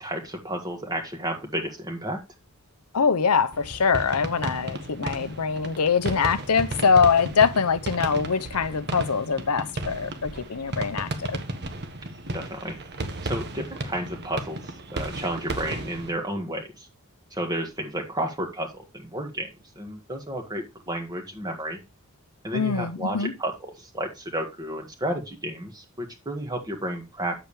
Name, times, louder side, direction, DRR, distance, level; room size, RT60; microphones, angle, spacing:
voice 1, 0.0-2.2 12.3-12.8 13.2-16.9 17.3-19.5 19.8-21.8 22.4-27.3, right 1 dB, 20° right, 1.7 m, -32 dB
voice 2, 2.9-11.4 22.5-23.3, left 6 dB, 85° left, 0.8 m, -23 dB
sound 1, 3.5-16.1, right 2 dB, 50° right, 1.4 m, -34 dB
8.8 x 7.9 x 3.2 m
head